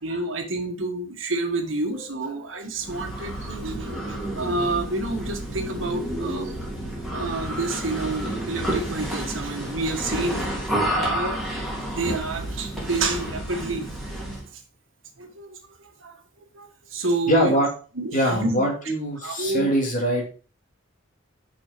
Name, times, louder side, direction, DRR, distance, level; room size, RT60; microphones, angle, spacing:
voice 1, 0.0-6.5 7.1-10.5 10.9-11.4 11.9-13.9 15.2-16.2 16.5-17.6 18.0-18.6 19.2-19.8, right 2 dB, 80° right, 4 dB, 1.5 m, -29 dB
sound 1, 2.8-14.5, right 1 dB, ahead, 2.5 m, -30 dB
voice 2, 17.3-17.7 18.1-20.3, equal, 40° left, 0 dB, 2.6 m, -23 dB
6.1 x 5.6 x 5.0 m, 0.37 s
head